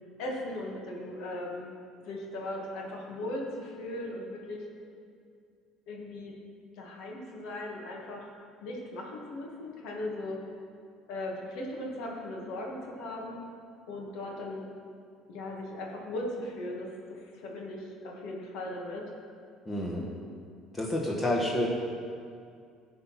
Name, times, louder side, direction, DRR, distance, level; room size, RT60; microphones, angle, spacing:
voice 1, 0.2-1.7 2.0-4.6 5.9-6.3 6.8-8.3 8.6-10.4 11.1-13.4 13.9-14.7 15.3-19.0, left 1 dB, 75° left, -1 dB, 1.9 m, -38 dB
voice 2, 19.6-20.1 20.7-21.7, left 1 dB, 20° left, -3 dB, 1.4 m, -29 dB
13.0 x 4.3 x 5.8 m, 2.3 s
supercardioid pair, 95°, 0 cm